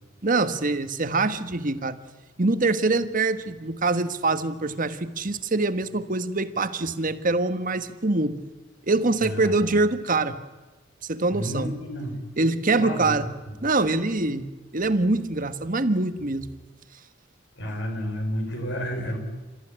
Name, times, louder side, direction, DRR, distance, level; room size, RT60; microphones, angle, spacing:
voice 1, 0.2-2.0 2.4-8.4 8.8-10.4 11.1-11.7 12.4-13.3 13.6-14.5 14.7-16.5, right 3 dB, 45° right, 10 dB, 1.4 m, -24 dB
voice 2, 9.2-9.7 11.3-12.2 12.8-13.5 17.6-19.2, equal, 65° left, 4 dB, 5.9 m, -31 dB
29.0 x 14.5 x 10.0 m, 1.3 s
head